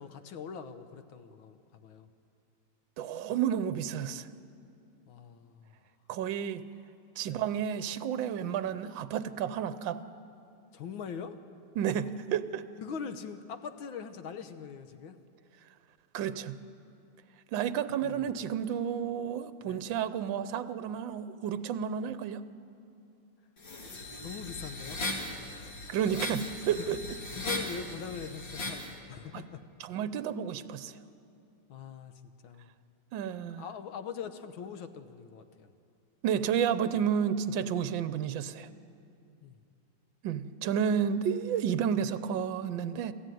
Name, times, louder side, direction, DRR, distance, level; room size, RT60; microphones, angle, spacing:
voice 1, 0.0-2.1 5.1-5.7 7.3-7.4 10.7-11.4 12.8-15.2 16.2-16.3 18.0-18.3 19.7-19.8 24.2-25.0 25.5-25.7 26.3-26.4 26.8-27.0 27.3-29.6 31.7-32.1 32.4-32.7 33.6-35.7 39.4-39.6, left 7 dB, 85° left, 9 dB, 1.8 m, -42 dB
voice 2, 3.0-4.3 6.1-6.6 7.2-10.0 11.8-12.6 16.1-16.6 17.5-22.4 25.9-27.0 29.3-29.4 29.8-30.9 33.1-33.6 36.2-38.7 40.2-43.1, right 8 dB, 75° right, 13 dB, 1.5 m, -31 dB
sound 1, 23.6-28.9, left 2 dB, 65° left, 3.0 m, -38 dB
27.0 x 14.0 x 9.2 m, 2.6 s
omnidirectional pair, 2.1 m